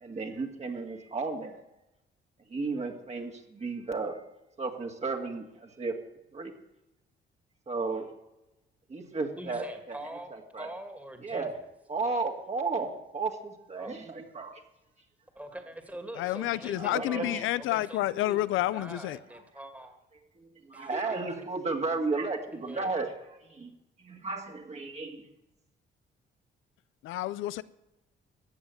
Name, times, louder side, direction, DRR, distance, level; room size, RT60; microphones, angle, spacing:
voice 1, 0.0-1.6 2.5-4.1 4.6-5.9 6.3-6.5 7.7-8.1 8.9-10.0 10.5-10.7 11.2-11.5 11.9-14.6 16.8-17.4 20.4-23.1 23.5-23.7 24.0-25.3, right 3 dB, 35° right, 2.1 m, -33 dB
voice 2, 9.4-11.7 13.8-14.1 15.3-18.4 18.7-20.0 20.7-21.3 22.5-23.0, right 1 dB, 5° right, 2.2 m, -44 dB
voice 3, 16.2-19.2 27.0-27.6, left 15 dB, 90° left, 0.6 m, -29 dB
15.0 x 8.1 x 9.6 m
cardioid pair, 90°, 20 cm